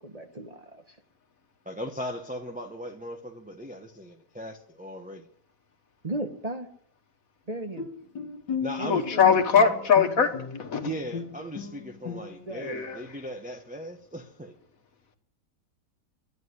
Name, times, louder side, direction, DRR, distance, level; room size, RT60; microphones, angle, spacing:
voice 1, 0.0-1.0 6.0-6.7 7.5-7.9 8.8-9.4 12.5-12.7, right 1 dB, 30° right, 0.9 m, -36 dB
voice 2, 1.6-5.3 8.6-9.0 10.8-14.5, equal, 5° right, 0.6 m, -38 dB
Bowed string instrument, 7.8-12.6, left 6 dB, 80° left, 2.1 m, -36 dB
voice 3, 8.9-10.3 10.6-10.9 12.6-13.0, left 6 dB, 55° left, 1.8 m, -21 dB
11.5 x 10.5 x 9.6 m
omnidirectional pair, 1.9 m